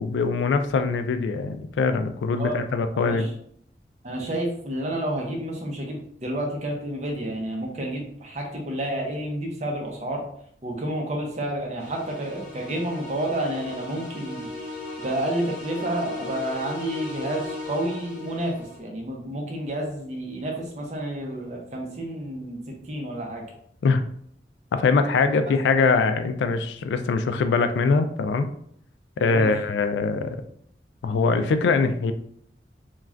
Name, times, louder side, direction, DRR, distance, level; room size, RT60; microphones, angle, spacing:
voice 1, 0.0-3.3 23.8-24.0 24.7-28.5 29.2-30.4 31.0-32.1, left 4 dB, 90° left, 8 dB, 0.3 m, -22 dB
voice 2, 2.9-3.3 4.0-10.2 10.6-14.7 15.0-23.5 25.6-25.7 29.3-29.5, right 1 dB, 40° right, 0 dB, 0.6 m, -30 dB
sound 1, 11.8-18.8, left 2 dB, 15° left, 0.9 m, -37 dB
2.4 x 2.3 x 3.2 m, 0.66 s
head